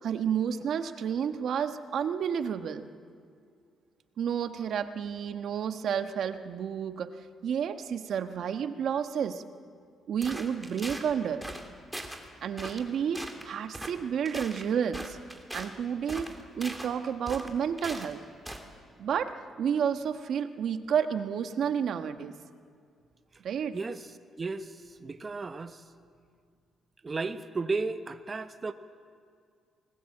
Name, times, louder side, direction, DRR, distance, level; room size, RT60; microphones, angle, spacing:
voice 1, 0.0-2.9 4.2-7.2 7.4-9.4 10.1-11.4 12.4-15.2 15.5-16.2 16.5-18.2 19.0-22.3 23.4-23.8, right 8 dB, 65° right, 8 dB, 1.3 m, -30 dB
sound 1, 10.2-11.1 11.4-11.7 11.9-12.2 12.6-12.9 13.1-13.4 13.7-13.9 14.3-15.7 16.1-16.9 17.3-18.1 18.5-18.7, right 1 dB, 5° right, 3.0 m, -40 dB
voice 2, 23.7-24.1 24.4-25.8 27.0-28.7, right 3 dB, 30° right, 9 dB, 1.0 m, -34 dB
27.5 x 21.0 x 7.8 m, 2.2 s
cardioid pair, 90°, 0 cm